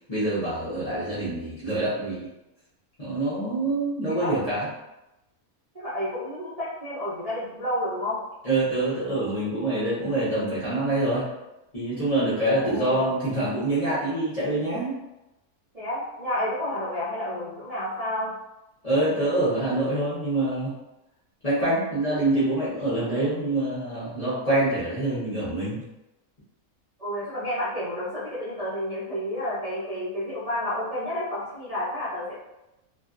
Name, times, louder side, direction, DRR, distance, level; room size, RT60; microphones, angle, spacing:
voice 1, 0.1-2.3 3.0-4.7 8.4-11.3 11.7-15.0 18.8-20.7 21.4-25.8, right 2 dB, 35° left, -11 dB, 0.6 m, -25 dB
voice 2, 5.7-8.2 12.4-13.1 15.7-18.3 27.0-32.3, left 1 dB, 40° right, -13 dB, 0.6 m, -30 dB
2.6 x 2.2 x 2.5 m, 0.94 s
omnidirectional pair, 1.5 m